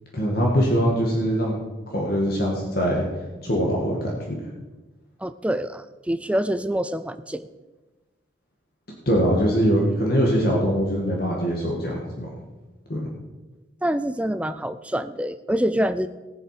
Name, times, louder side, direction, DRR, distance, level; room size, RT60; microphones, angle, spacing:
voice 1, 0.1-1.6 1.9-3.1 3.4-4.4 9.1-12.3 12.9-13.1, equal, 55° left, -2 dB, 2.0 m, -22 dB
voice 2, 5.2-7.5 13.8-16.1, equal, 5° right, 12 dB, 0.4 m, -26 dB
18.5 x 7.4 x 5.0 m, 1.2 s
head